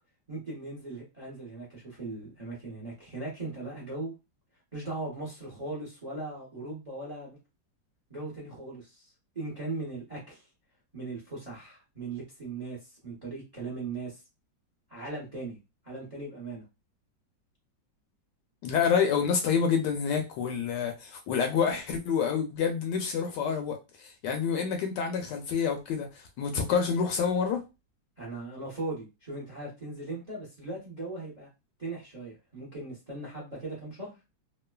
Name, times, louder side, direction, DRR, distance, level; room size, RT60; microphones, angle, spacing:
voice 1, 0.3-4.1 4.7-7.4 8.1-10.4 10.9-14.2 14.9-15.6 15.8-16.7 28.2-31.5 31.8-34.1, right 2 dB, 35° right, 0.6 m, -39 dB
voice 2, 18.6-27.6, left 6 dB, 75° left, 1.1 m, -28 dB
3.0 x 2.2 x 2.2 m
omnidirectional pair, 2.0 m